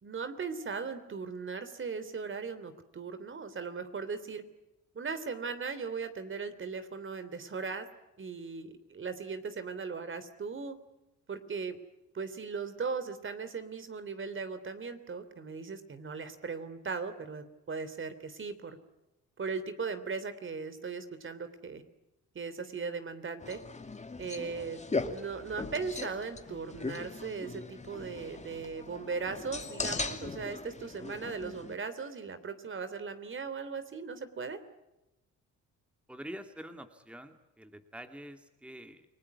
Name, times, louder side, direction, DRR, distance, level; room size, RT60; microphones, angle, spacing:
voice 1, 0.0-4.4 4.9-7.9 8.2-10.8 11.3-11.8 12.1-18.8 19.4-21.8 22.3-23.6 24.2-34.6, right 5 dB, 40° right, 11 dB, 3.2 m, -38 dB
sound 1, 23.4-31.8, left 3 dB, 25° left, 2.5 m, -39 dB
voice 2, 36.1-39.1, equal, 5° right, 7 dB, 2.2 m, -46 dB
29.5 x 20.0 x 9.6 m, 0.94 s
cardioid pair, 90°, 30 cm